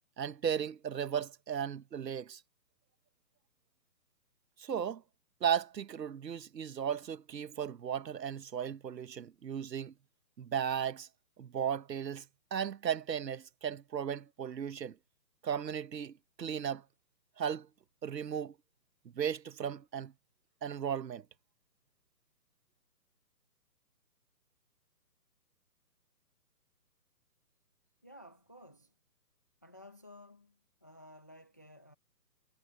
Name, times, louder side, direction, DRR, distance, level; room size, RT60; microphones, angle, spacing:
voice 1, 0.2-2.4 4.6-5.0 5.4-9.9 10.4-11.1 11.4-12.2 12.5-14.9 15.4-16.8 17.4-17.7 18.0-18.5 19.1-20.1 20.6-21.2, right 8 dB, 80° right, 1.1 m, -35 dB
voice 2, 28.0-28.9 29.6-31.9, left 1 dB, 10° left, 0.8 m, -55 dB
hypercardioid pair, 175°, 49 cm